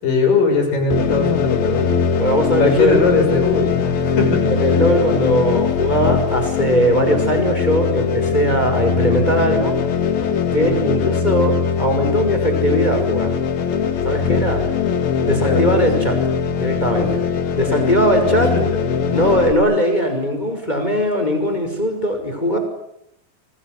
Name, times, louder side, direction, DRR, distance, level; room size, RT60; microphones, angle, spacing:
voice 1, 0.0-1.9 2.6-4.7 10.6-10.8 15.2-15.8 17.0-17.1 17.5-17.9 18.4-18.6 18.9-19.0, left 3 dB, 70° left, 5 dB, 8.1 m, -20 dB
Stereo tron bike engine, 0.9-19.5, left 6 dB, 85° left, 3.9 m, -20 dB
voice 2, 2.2-3.0 4.5-9.8 10.5-13.4 14.0-14.6 15.2-16.2 16.6-17.2 17.5-18.5 19.1-22.6, equal, 10° left, 5 dB, 5.6 m, -19 dB
29.5 x 24.5 x 8.2 m, 0.77 s
omnidirectional pair, 4.1 m